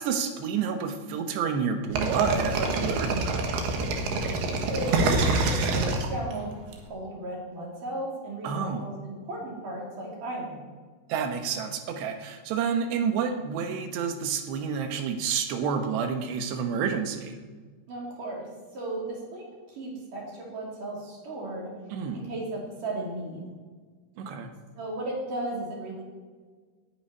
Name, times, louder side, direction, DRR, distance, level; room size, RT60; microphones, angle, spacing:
voice 1, 0.0-3.5 8.4-8.8 11.1-17.4 21.9-22.2 24.2-24.5, right 6 dB, 90° right, 6 dB, 3.4 m, -29 dB
sound 1, 2.0-6.7, right 3 dB, 75° right, 3.4 m, -26 dB
voice 2, 4.6-6.5 6.9-10.6 17.9-21.7 22.1-23.5 24.7-26.0, right 1 dB, 55° right, -2 dB, 4.6 m, -35 dB
9.9 x 9.4 x 9.5 m, 1.5 s
omnidirectional pair, 4.7 m